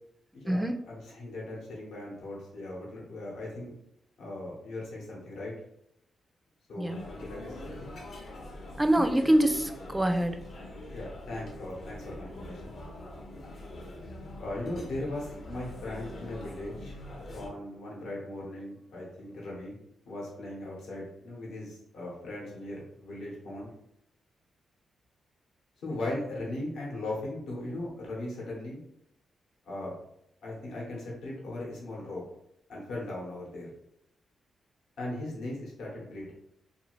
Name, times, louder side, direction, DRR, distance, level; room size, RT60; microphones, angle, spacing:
voice 1, 0.3-3.7 4.2-5.5 6.7-7.9 10.9-12.8 14.4-16.9 17.3-19.7 20.1-23.7 25.8-28.8 29.6-29.9 30.4-32.2 32.7-33.7 35.0-36.3, left 1 dB, 85° left, -4 dB, 1.0 m, -38 dB
sound 1, 6.9-17.5, left 1 dB, 65° left, 0.7 m, -44 dB
voice 2, 8.8-10.4, right 1 dB, 15° right, 7 dB, 0.4 m, -25 dB
2.7 x 2.7 x 3.0 m, 0.78 s
cardioid pair, 75°, 0 cm